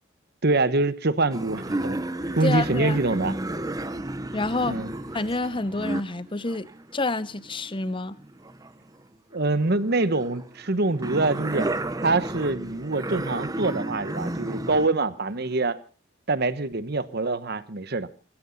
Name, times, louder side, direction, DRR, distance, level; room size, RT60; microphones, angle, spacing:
voice 1, 0.4-2.0 2.4-3.3 4.6-4.9 9.3-11.7 12.0-15.8 16.3-18.1, right 2 dB, 55° right, 1.1 m, -25 dB
sound 1, 1.3-9.0 9.4-14.9 15.3-15.5, right 1 dB, 20° right, 0.9 m, -33 dB
sound 2, 2.2-7.1, right 1 dB, 40° right, 2.0 m, -51 dB
voice 2, 2.4-3.0 4.3-4.8 5.1-6.7 6.9-8.2, left 2 dB, 25° left, 0.8 m, -28 dB
21.0 x 16.0 x 4.0 m
head